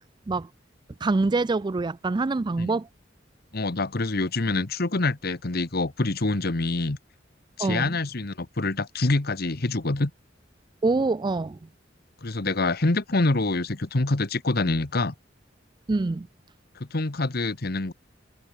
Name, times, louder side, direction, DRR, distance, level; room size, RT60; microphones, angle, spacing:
voice 1, 1.0-2.9 7.6-8.0 10.8-11.6 15.9-16.3, right 3 dB, 25° right, 0.4 m, -25 dB
voice 2, 3.5-7.0 7.6-10.1 12.2-15.1 16.9-17.9, left 2 dB, 55° left, 1.3 m, -26 dB
head